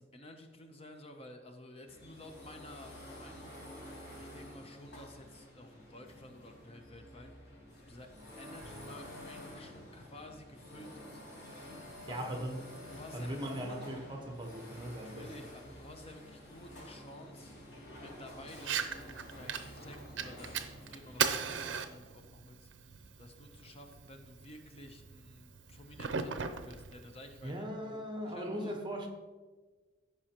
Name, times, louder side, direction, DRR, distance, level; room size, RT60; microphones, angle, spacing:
voice 1, 0.0-3.9 4.2-7.3 7.8-8.1 8.4-11.2 12.1-12.5 12.9-13.8 14.9-17.5 17.9-18.8 19.4-27.7 28.2-28.8, left 1 dB, 30° left, 0.7 m, -52 dB
sound 1, 1.9-21.6, equal, 65° left, 2.7 m, -50 dB
voice 2, 12.1-12.5 13.1-15.3 27.4-29.1, equal, 25° right, 1.1 m, -39 dB
Fire, 18.5-27.5, right 7 dB, 70° right, 0.6 m, -39 dB
14.5 x 5.6 x 2.9 m
head